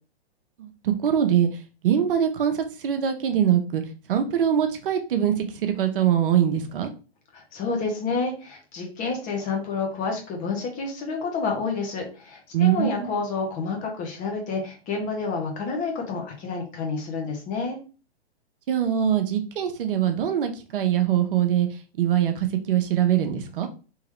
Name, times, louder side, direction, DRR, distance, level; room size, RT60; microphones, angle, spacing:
voice 1, 0.6-3.8 4.1-6.9 12.5-13.1 18.7-23.7, right 9 dB, 55° right, 7 dB, 0.7 m, -23 dB
voice 2, 7.3-17.8, left 4 dB, 25° left, 1 dB, 1.1 m, -29 dB
3.7 x 2.9 x 3.0 m, 0.35 s
hypercardioid pair, 130°, 32 cm